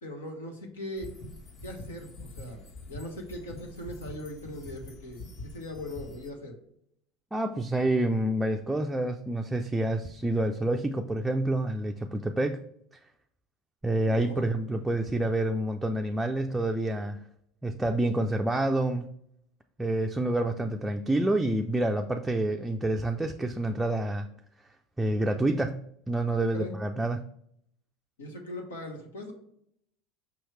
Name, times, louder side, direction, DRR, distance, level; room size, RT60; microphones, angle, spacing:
voice 1, 0.0-1.1 1.6-5.2 5.5-6.5 14.0-14.4 26.5-26.7 28.2-29.3, left 1 dB, 90° left, 2 dB, 1.0 m, -40 dB
sound 1, 1.0-6.3, left 2 dB, 55° left, 1.3 m, -45 dB
voice 2, 7.3-12.6 13.8-17.2 17.6-19.1 19.8-24.3 25.0-27.2, right 1 dB, 10° right, 3 dB, 0.3 m, -28 dB
5.2 x 3.1 x 3.2 m, 0.72 s
hypercardioid pair, 85°, 0 cm